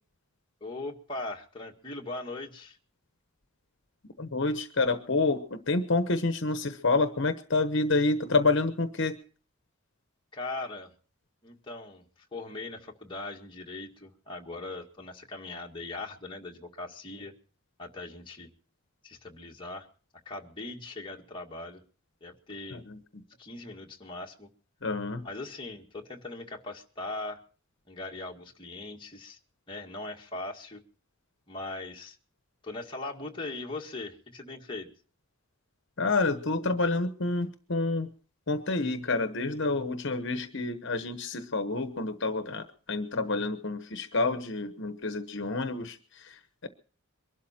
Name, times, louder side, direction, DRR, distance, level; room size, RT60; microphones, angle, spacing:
voice 1, 0.6-2.8 10.3-10.9 11.4-12.1 12.3-17.3 17.8-18.5 19.0-19.9 20.3-21.8 22.2-22.9 23.4-24.5 25.2-27.4 27.9-29.4 29.7-30.8 31.5-32.2 32.6-34.9, left 2 dB, 25° left, 0 dB, 1.9 m, -40 dB
voice 2, 4.2-9.2 22.7-23.0 24.8-25.2 36.0-38.1 38.5-46.7, left 3 dB, 60° left, 9 dB, 1.1 m, -28 dB
23.0 x 12.5 x 4.4 m, 0.41 s
head